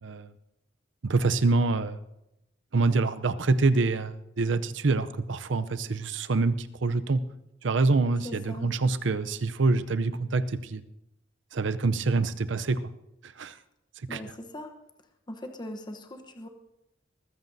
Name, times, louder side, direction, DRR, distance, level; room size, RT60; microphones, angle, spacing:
voice 1, 1.0-2.0 2.7-7.2 7.6-10.8 11.5-12.8 13.2-13.5 14.1-14.2, right 3 dB, 80° right, 12 dB, 0.6 m, -26 dB
voice 2, 8.2-8.7 14.1-14.7 15.3-16.5, left 1 dB, 25° left, 4 dB, 1.0 m, -40 dB
22.5 x 15.0 x 2.7 m, 0.89 s
head